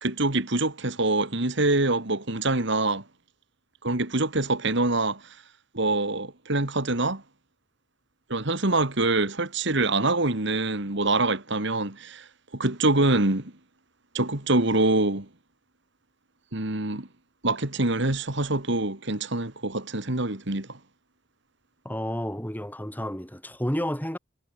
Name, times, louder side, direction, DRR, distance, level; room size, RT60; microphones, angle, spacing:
voice 1, 0.0-3.0 3.8-5.2 5.7-7.2 8.3-12.3 12.5-13.5 14.1-15.3 16.5-17.1 17.4-20.8, right 2 dB, 60° right, 2.7 m, -25 dB
voice 2, 21.9-24.2, equal, 10° left, 5.4 m, -31 dB
head